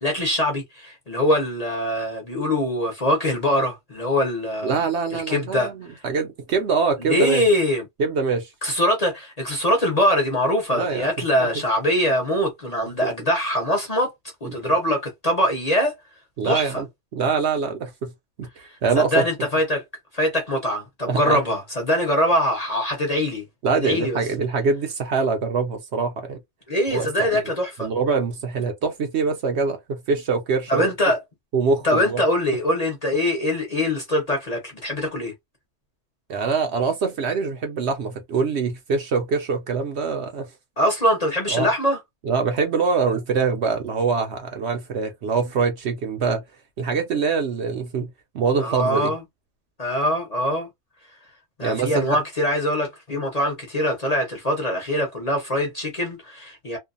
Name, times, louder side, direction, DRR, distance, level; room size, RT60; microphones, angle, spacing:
voice 1, 0.0-4.8 5.1-5.7 7.0-7.8 8.6-14.1 14.4-15.9 16.4-16.8 18.9-19.8 20.1-23.4 23.7-24.2 26.7-27.9 30.7-31.2 31.8-35.3 40.8-42.0 48.6-49.2 49.8-50.7 51.6-56.8, left 1 dB, 35° left, 0.7 m, -23 dB
voice 2, 4.6-7.4 8.0-8.5 10.7-11.1 11.4-11.5 14.4-14.7 16.4-16.9 17.1-18.1 18.4-18.5 18.8-19.2 21.1-21.4 23.6-26.4 26.9-27.1 27.3-27.4 27.8-30.9 31.5-32.2 36.3-40.5 41.5-41.7 42.2-46.4 46.8-48.1 48.3-49.1 51.6-52.2, right 5 dB, 60° right, 0.9 m, -24 dB
2.6 x 2.2 x 2.4 m
omnidirectional pair, 1.4 m